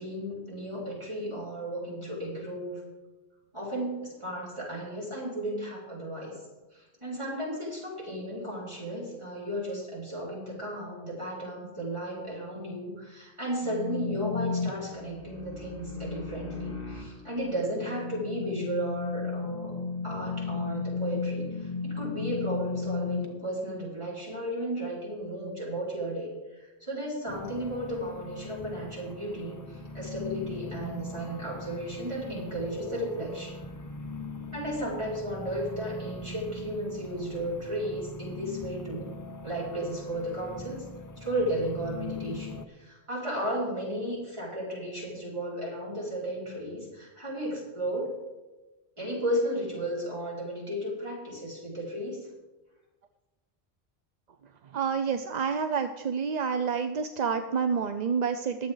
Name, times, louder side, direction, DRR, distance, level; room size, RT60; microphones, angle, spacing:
voice 1, 0.0-2.8 3.5-6.4 6.7-19.8 20.0-33.6 34.5-39.1 39.4-40.8 41.2-48.2 49.0-52.3, right 1 dB, 25° right, -7 dB, 5.3 m, -34 dB
sound 1, 13.6-23.3, left 4 dB, 55° left, 1.7 m, -34 dB
sound 2, 27.3-42.7, left 3 dB, 20° left, 0.6 m, -41 dB
voice 2, 54.7-58.7, right 6 dB, 50° right, 8 dB, 0.6 m, -28 dB
21.5 x 7.6 x 3.9 m, 1.1 s
omnidirectional pair, 1.1 m